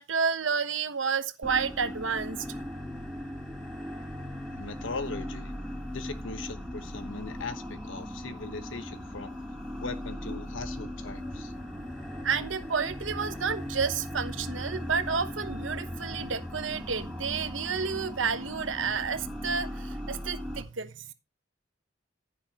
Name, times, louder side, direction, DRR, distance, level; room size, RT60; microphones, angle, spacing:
voice 1, 0.0-2.4 12.2-21.1, right 5 dB, 75° right, 1.1 m, -30 dB
sound 1, 1.4-20.6, left 1 dB, ahead, 3.7 m, -39 dB
voice 2, 4.6-5.5 5.9-9.4 9.8-11.5, left 3 dB, 75° left, 1.2 m, -39 dB
sound 2, 10.6-18.1, equal, 30° left, 1.2 m, -44 dB
10.5 x 10.0 x 3.0 m
head